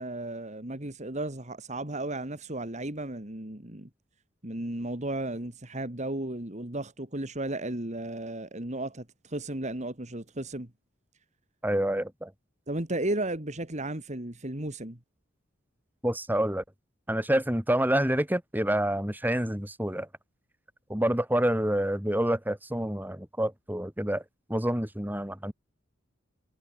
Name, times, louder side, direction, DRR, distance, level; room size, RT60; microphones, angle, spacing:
voice 1, 0.0-3.9 4.4-10.7 12.7-15.0, right 1 dB, 35° right, 2.7 m, -34 dB
voice 2, 11.6-12.3 16.0-16.6 17.1-20.1 20.9-24.2 24.5-25.5, right 1 dB, 10° right, 3.6 m, -27 dB
head